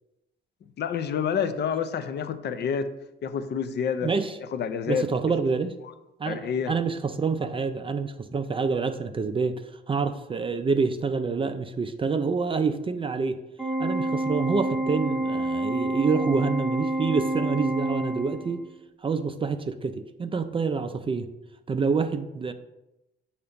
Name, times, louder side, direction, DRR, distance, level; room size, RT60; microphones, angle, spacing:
voice 1, 0.8-2.9 3.2-4.1 4.5-5.1 6.2-6.7, left 7 dB, 60° left, 11 dB, 0.5 m, -28 dB
voice 2, 4.0-4.4 4.9-5.7 6.2-13.4 13.8-18.6 19.0-21.3 21.7-22.5, right 4 dB, 25° right, 8 dB, 0.4 m, -27 dB
Organ, 13.6-18.6, right 2 dB, 5° right, 0.8 m, -28 dB
6.7 x 2.9 x 5.0 m, 0.92 s
cardioid pair, 90°, 20 cm